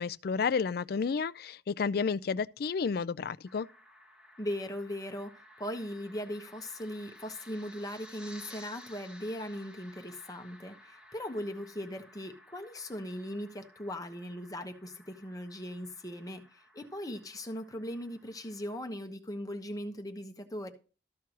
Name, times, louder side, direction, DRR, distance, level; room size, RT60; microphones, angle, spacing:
voice 1, 0.0-3.7, left 5 dB, 60° left, 0.4 m, -31 dB
sound 1, 3.5-18.8, left 1 dB, 5° right, 1.3 m, -55 dB
voice 2, 4.4-20.7, equal, 20° left, 1.1 m, -39 dB
13.5 x 4.7 x 6.1 m
head